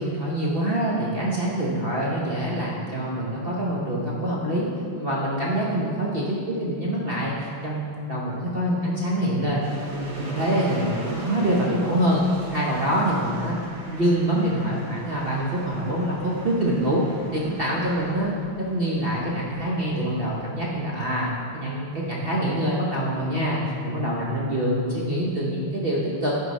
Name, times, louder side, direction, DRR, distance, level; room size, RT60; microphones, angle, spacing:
voice 1, 0.0-4.7 4.9-9.6 9.9-13.6 13.9-17.0 17.3-18.3 18.7-21.3 21.6-26.3, right 1 dB, 65° right, -5 dB, 0.5 m, -25 dB
sound 1, 9.6-21.4, right 1 dB, 85° right, 2.2 m, -41 dB
9.6 x 4.7 x 4.0 m, 2.4 s
omnidirectional pair, 2.2 m